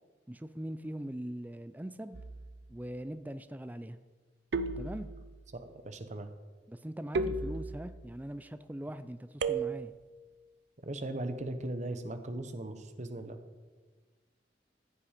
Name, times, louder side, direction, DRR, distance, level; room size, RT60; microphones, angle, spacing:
voice 1, 0.3-2.2 2.7-4.0 4.8-5.1 6.7-9.9, right 1 dB, 10° right, 11 dB, 0.4 m, -41 dB
sound 1, 2.1-2.7 4.5-5.5 7.1-8.1 9.4-10.1, right 3 dB, 65° right, 0.6 m, -35 dB
voice 2, 5.5-6.3 10.8-13.4, right 1 dB, 40° right, 8 dB, 1.0 m, -38 dB
14.5 x 8.5 x 5.1 m, 1.4 s
head